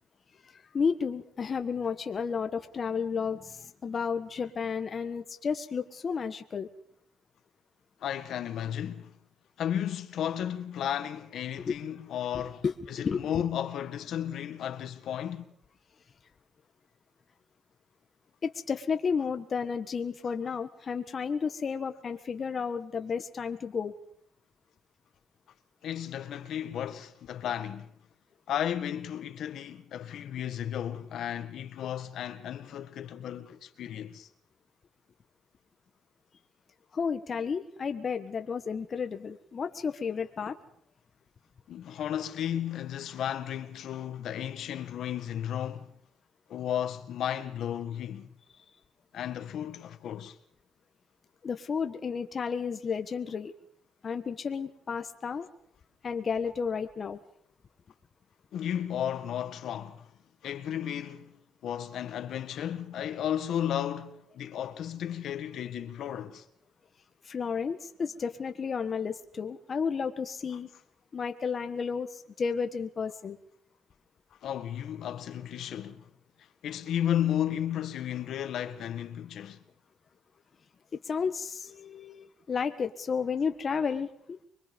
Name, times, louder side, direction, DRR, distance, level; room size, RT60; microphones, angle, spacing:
voice 1, 0.7-6.7 11.6-11.8 12.3-13.4 18.4-23.9 36.9-40.6 51.4-53.5 54.0-55.4 56.0-57.2 67.2-70.7 71.1-73.4 81.0-84.1, left 6 dB, 45° left, 1.5 m, -32 dB
voice 2, 8.0-9.2 9.6-15.5 25.8-27.9 28.5-34.3 41.7-45.9 46.5-48.3 49.1-50.4 58.5-60.1 60.4-66.4 74.4-76.1 76.6-79.6, left 10 dB, 75° left, 1.7 m, -34 dB
25.0 x 22.5 x 5.4 m
cardioid pair, 90°, 0 cm